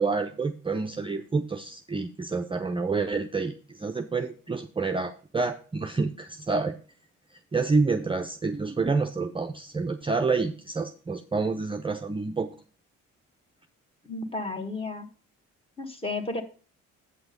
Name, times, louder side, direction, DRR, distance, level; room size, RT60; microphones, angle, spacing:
voice 1, 0.0-6.8 7.5-12.5, right 4 dB, 15° right, 6 dB, 0.5 m, -28 dB
voice 2, 14.0-15.1 15.8-16.4, left 2 dB, 20° left, 7 dB, 1.4 m, -32 dB
7.8 x 6.1 x 5.1 m, 0.39 s
cardioid pair, 90°, 30 cm